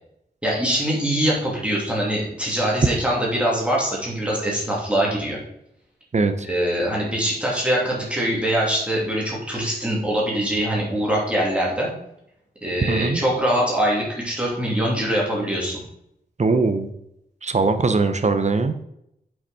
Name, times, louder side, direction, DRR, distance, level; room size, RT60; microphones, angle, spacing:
voice 1, 0.4-5.4 6.4-11.9 12.6-15.8, right 1 dB, 5° right, -4 dB, 2.8 m, -23 dB
voice 2, 6.1-6.5 12.9-13.2 16.4-16.9 17.4-18.7, right 3 dB, 40° right, 9 dB, 0.8 m, -21 dB
7.4 x 5.8 x 4.3 m, 0.77 s
wide cardioid pair, 115°, 17 cm